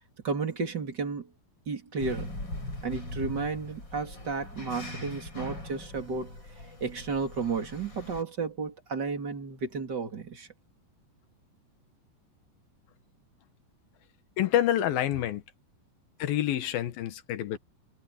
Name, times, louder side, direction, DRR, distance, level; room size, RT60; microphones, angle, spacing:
voice 1, 0.2-1.3 1.7-2.3 2.8-6.4 6.8-10.5, right 4 dB, 30° right, 3.1 m, -33 dB
sound 1, 2.0-8.2, left 1 dB, 30° left, 8.6 m, -40 dB
voice 2, 14.4-15.4 16.2-17.6, left 12 dB, 90° left, 3.2 m, -27 dB
omnidirectional pair, 4.1 m